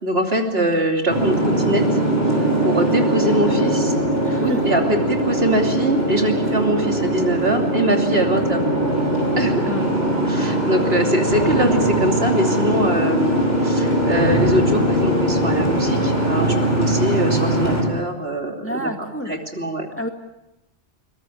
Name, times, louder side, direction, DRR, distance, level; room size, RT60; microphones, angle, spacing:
voice 1, 0.0-1.4 1.7-1.8 2.6-3.9 4.2-8.6 9.4-9.7 10.3-18.9 19.3-19.9, right 1 dB, 60° right, 2 dB, 3.3 m, -22 dB
Boat Water vehicle, 1.1-17.8, right 1 dB, 40° left, 6.4 m, -20 dB
voice 2, 4.2-4.6 9.6-10.0 18.6-19.4 20.0-20.1, equal, 10° left, 4 dB, 2.2 m, -29 dB
23.0 x 21.0 x 8.5 m, 0.90 s
omnidirectional pair, 1.1 m